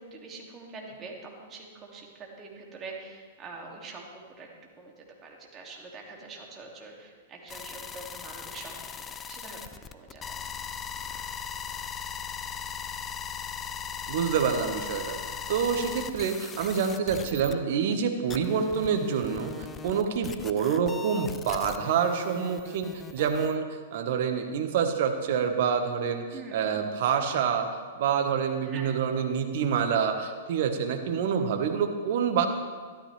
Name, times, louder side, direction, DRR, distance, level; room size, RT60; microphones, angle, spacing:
voice 1, 0.0-4.5 4.8-4.9 5.2-8.8 9.3-9.6 9.9-10.4 26.3-26.7 28.6-29.0, right 3 dB, 25° right, 0 dB, 2.5 m, -44 dB
sound 1, 7.5-17.5 17.9-18.0 18.3-23.5, left 7 dB, 20° left, 0.6 m, -39 dB
voice 2, 14.1-15.2 15.5-27.7 28.0-32.4, right 7 dB, 55° right, 6 dB, 1.4 m, -27 dB
13.0 x 13.0 x 3.4 m, 1.5 s
hypercardioid pair, 110°, 0 cm